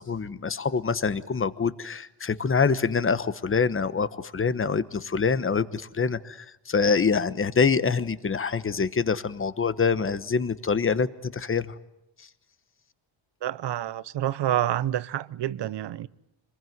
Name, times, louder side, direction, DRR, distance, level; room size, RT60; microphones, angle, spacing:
voice 1, 0.0-11.7 12.2-12.3, left 5 dB, 25° left, 1.1 m, -25 dB
voice 2, 13.4-16.1, right 12 dB, 60° right, 0.9 m, -28 dB
26.5 x 21.0 x 9.4 m
cardioid pair, 120°, 48 cm